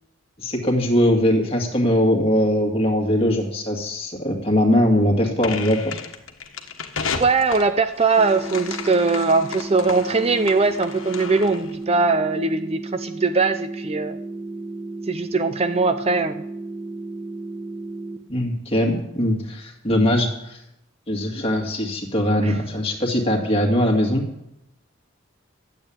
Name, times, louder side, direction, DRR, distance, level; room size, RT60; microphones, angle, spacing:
voice 1, 0.4-6.0 18.3-20.6 21.1-24.2, left 1 dB, 25° left, 2 dB, 2.2 m, -21 dB
sound 1, 5.4-11.8, left 5 dB, 75° left, 1.4 m, -33 dB
voice 2, 7.2-14.2 15.1-16.4 22.4-22.6, right 4 dB, 30° right, 10 dB, 0.4 m, -21 dB
sound 2, 8.2-18.2, right 2 dB, 10° right, 1.1 m, -34 dB
12.0 x 8.3 x 8.7 m, 0.85 s
head